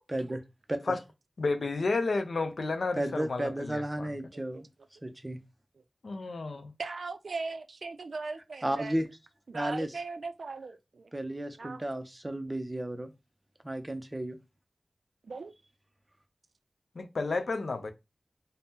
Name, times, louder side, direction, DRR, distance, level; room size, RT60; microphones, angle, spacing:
voice 1, 0.1-0.4 0.7-0.8 2.9-4.7 5.0-5.4 8.6-9.1 9.5-9.9 11.1-13.1 13.6-14.4, right 1 dB, 20° right, 0.5 m, -33 dB
voice 2, 1.4-4.1 6.0-6.7 17.0-17.9, left 3 dB, 80° left, 0.4 m, -31 dB
voice 3, 6.8-9.1 9.5-11.1 11.6-11.8 15.2-15.5, right 4 dB, 85° right, 0.3 m, -39 dB
2.7 x 2.0 x 3.4 m
wide cardioid pair, 85°, 0 cm